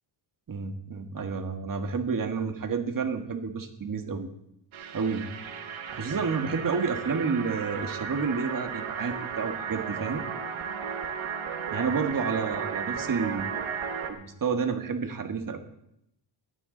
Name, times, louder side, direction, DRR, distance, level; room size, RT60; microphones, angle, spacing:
voice 1, 0.5-4.3 4.9-5.3 5.9-10.2 11.7-13.7 14.1-15.6, right 5 dB, 45° right, 6 dB, 1.7 m, -30 dB
sound 1, 4.7-14.1, right 7 dB, 85° right, 1.5 m, -34 dB
16.5 x 12.5 x 4.0 m, 0.79 s
cardioid pair, 115°, 46 cm